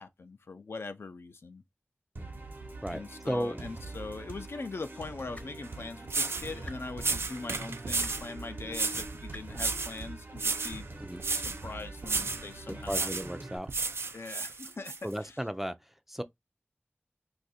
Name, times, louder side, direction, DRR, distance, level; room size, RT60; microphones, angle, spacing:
voice 1, 0.0-1.6 2.9-10.9 11.3-13.1 14.1-15.0, left 3 dB, 75° left, 0.4 m, -42 dB
sound 1, 2.2-13.6, right 2 dB, 55° right, 0.9 m, -44 dB
voice 2, 2.8-3.7 11.0-11.2 12.7-13.7 15.0-16.2, equal, 5° right, 0.4 m, -35 dB
sound 2, 5.3-5.5 6.6-6.8 8.0-8.2 9.3-9.4 10.7-10.8, left 2 dB, 35° left, 0.7 m, -45 dB
sound 3, 5.6-5.7 6.1-6.5 7.0-8.3 8.7-9.1 9.5-10.0 10.4-10.8 11.2-11.6 12.0-12.5 12.9-13.3 13.7-15.0, right 4 dB, 75° right, 0.4 m, -32 dB
2.6 x 2.4 x 4.1 m
wide cardioid pair, 65°, 4 cm